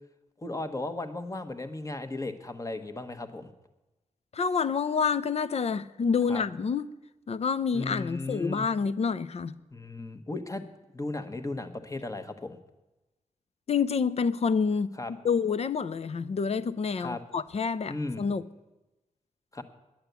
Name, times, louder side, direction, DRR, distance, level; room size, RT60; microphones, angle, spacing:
voice 1, 0.4-3.5 6.3-6.4 7.7-8.7 9.7-10.7 10.9-12.6 15.0-15.1 17.0-17.2 17.9-18.2 19.5-19.6, left 2 dB, 25° left, 1.3 m, -35 dB
voice 2, 4.3-6.9 7.3-9.5 13.7-18.4, left 5 dB, 50° left, 0.6 m, -28 dB
10.5 x 8.7 x 8.1 m
cardioid pair, 75°, 13 cm